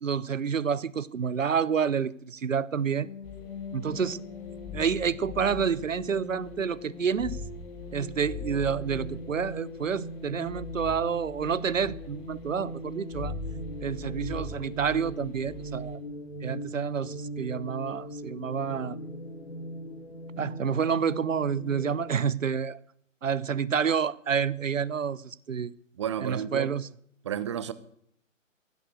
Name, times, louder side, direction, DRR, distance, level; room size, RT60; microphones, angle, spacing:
voice 1, 0.0-3.1 3.7-4.2 4.7-7.4 7.9-13.4 13.8-16.0 16.4-19.0 20.4-22.8 23.2-25.7 26.2-26.9, right 7 dB, 70° right, 0.9 m, -29 dB
sound 1, 3.0-22.2, equal, 50° left, 3.3 m, -41 dB
sound 2, 3.2-17.5, left 4 dB, 20° left, 2.0 m, -43 dB
voice 2, 26.0-26.7 27.2-27.7, right 9 dB, 20° right, 0.8 m, -31 dB
16.0 x 11.5 x 6.5 m
figure-of-eight pair, 140°, 39 cm